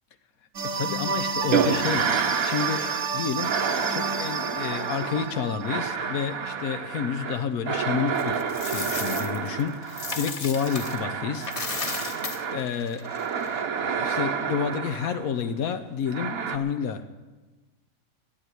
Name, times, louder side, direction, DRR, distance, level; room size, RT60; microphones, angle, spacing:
sound 1, 0.5-6.6, right 5 dB, 65° right, 1.1 m, -31 dB
voice 1, 0.6-11.5 12.1-12.2 12.5-13.1 13.8-17.1, left 7 dB, 85° left, 8 dB, 1.3 m, -30 dB
sound 2, 1.5-3.1 3.4-12.7 13.0-15.4 16.1-16.6, right 6 dB, 80° right, 1.4 m, -29 dB
Coin (dropping), 8.2-11.0 11.4-13.6, left 3 dB, 30° left, 0.9 m, -35 dB
11.5 x 9.8 x 9.3 m, 1.2 s
omnidirectional pair, 1.5 m